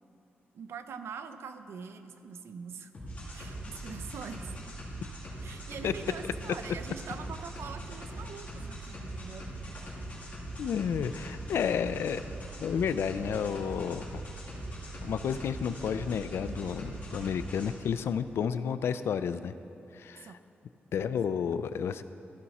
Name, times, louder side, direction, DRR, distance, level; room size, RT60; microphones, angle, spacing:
voice 1, 0.5-2.9 3.3-4.5 5.4-9.7 20.2-20.4 21.3-21.4, right 6 dB, 80° right, 9 dB, 0.5 m, -44 dB
sound 1, 2.9-17.7, right 1 dB, 35° left, 2.4 m, -41 dB
voice 2, 10.6-12.2 12.6-14.2 15.0-19.5 19.9-20.3 20.9-22.0, left 7 dB, 75° left, 13 dB, 0.3 m, -31 dB
14.0 x 5.9 x 4.1 m, 2.7 s
wide cardioid pair, 145°, 4 cm